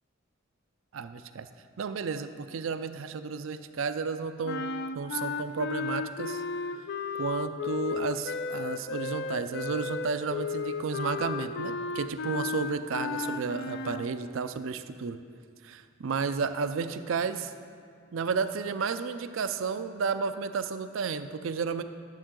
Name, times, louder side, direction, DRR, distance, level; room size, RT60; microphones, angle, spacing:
voice 1, 0.9-1.5 1.8-4.7 5.0-6.4 7.2-15.2 15.6-17.5 18.1-21.8, right 5 dB, 70° right, 11 dB, 0.4 m, -32 dB
sound 1, 4.4-14.1, left 4 dB, 55° left, 0.4 m, -34 dB
11.5 x 7.3 x 3.8 m, 2.2 s
head